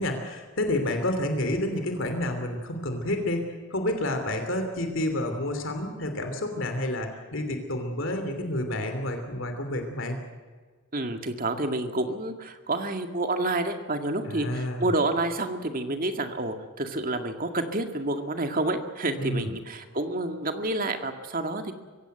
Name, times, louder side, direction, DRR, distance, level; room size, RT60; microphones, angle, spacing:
voice 1, 0.0-10.2 14.3-14.9 19.2-19.5, left 1 dB, 60° left, 6 dB, 3.0 m, -29 dB
voice 2, 10.9-21.7, right 2 dB, 40° right, 6 dB, 2.1 m, -29 dB
24.0 x 16.5 x 8.0 m, 1.4 s
head